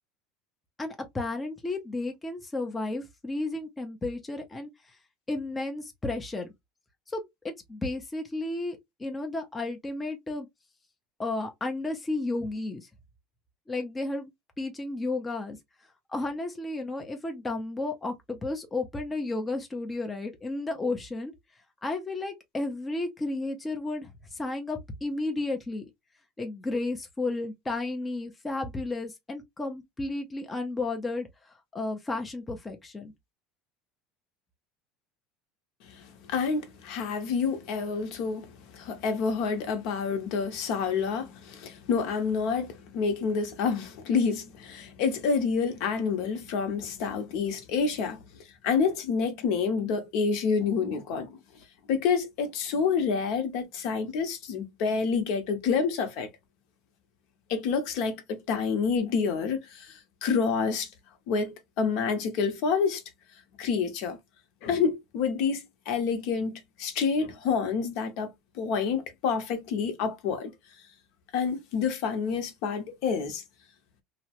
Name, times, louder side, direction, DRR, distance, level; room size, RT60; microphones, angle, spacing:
voice 1, 0.8-5.0 5.3-6.5 7.1-10.5 11.2-12.9 13.7-14.3 14.6-15.6 16.1-21.3 21.8-25.9 26.4-33.1, left 2 dB, 15° left, 0.5 m, -33 dB
voice 2, 35.9-48.2 48.6-51.4 51.9-56.3 57.5-60.9 61.3-63.0 63.6-64.2 64.6-68.3 68.5-70.5 71.3-73.4, left 5 dB, 65° left, 0.8 m, -28 dB
2.8 x 2.0 x 2.8 m
cardioid pair, 155°, 0 cm